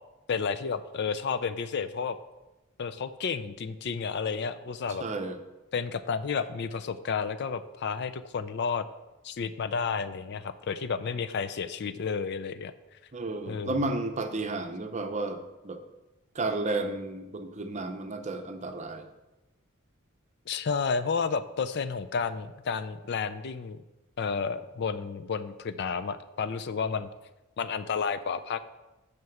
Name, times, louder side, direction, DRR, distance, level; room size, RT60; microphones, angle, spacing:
voice 1, 0.3-2.2 2.8-5.1 5.7-8.9 9.2-12.7 13.5-13.8 20.5-23.8 24.2-27.1 27.6-28.6, left 5 dB, 50° left, 12 dB, 0.4 m, -31 dB
voice 2, 5.0-5.4 13.1-15.8 16.3-19.1, right 2 dB, 35° right, 7 dB, 0.7 m, -32 dB
6.3 x 5.9 x 7.1 m, 1.0 s
head